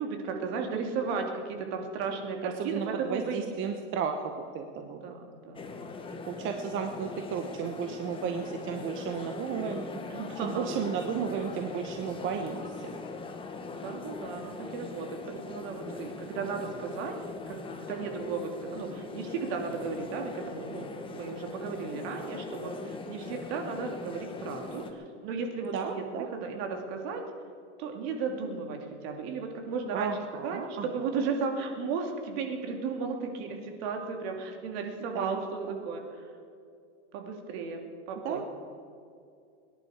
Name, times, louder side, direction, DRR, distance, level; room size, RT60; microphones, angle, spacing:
voice 1, 0.0-3.5 4.8-5.9 10.1-10.8 13.7-17.2 17.5-27.2 27.8-30.1 30.4-36.3 37.1-38.4, right 5 dB, 60° right, 3 dB, 2.6 m, -35 dB
voice 2, 2.4-5.1 6.3-12.9 25.7-26.3 29.9-30.9 31.2-31.3 35.1-35.4 35.7-35.8 38.2-38.4, right 7 dB, 35° right, 5 dB, 1.1 m, -34 dB
sound 1, 5.5-24.9, left 4 dB, 15° left, 1.2 m, -41 dB
22.5 x 10.5 x 5.0 m, 2.4 s
supercardioid pair, 140°, 35 cm